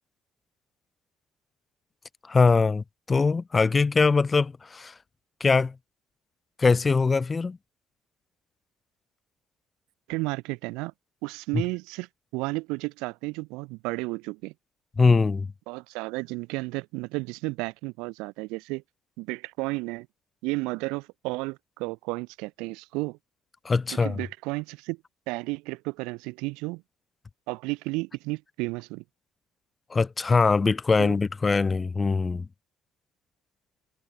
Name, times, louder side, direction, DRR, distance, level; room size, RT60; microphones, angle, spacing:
voice 1, 2.3-4.9 5.4-5.7 6.6-7.6 15.0-15.5 23.7-24.2 29.9-32.5, left 4 dB, 25° left, 0.3 m, -22 dB
voice 2, 10.1-10.9 11.2-14.5 15.7-18.8 19.2-20.1 20.4-23.2 23.9-25.0 25.3-26.8 27.5-29.0 31.0-31.2, right 25 dB, 90° right, 1.2 m, -33 dB
cardioid pair, 90°, 0 cm